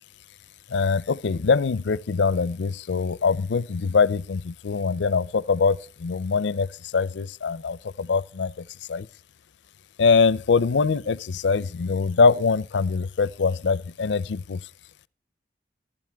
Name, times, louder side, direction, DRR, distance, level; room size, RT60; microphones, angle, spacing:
voice 1, 0.7-9.1 10.0-14.6, left 5 dB, 85° left, 0.5 m, -23 dB
15.0 x 12.5 x 3.4 m
head